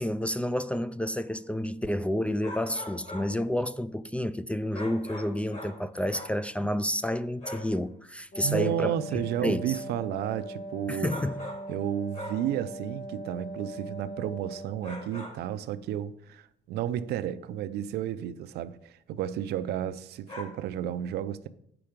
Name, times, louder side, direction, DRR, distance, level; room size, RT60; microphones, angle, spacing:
voice 1, 0.0-9.7 10.9-11.3, left 1 dB, 5° left, 0.3 m, -30 dB
sound 1, 2.4-3.4 4.7-6.4 7.4-7.8 11.1-11.8 12.1-12.6 14.8-15.5 20.3-20.4, left 1 dB, 40° left, 3.1 m, -41 dB
Wind instrument woodwind instrument, 8.3-15.1, right 1 dB, 85° left, 1.8 m, -41 dB
voice 2, 8.4-11.2 11.7-21.5, right 11 dB, 75° right, 0.5 m, -32 dB
8.3 x 5.9 x 5.1 m
cardioid pair, 110°, 17 cm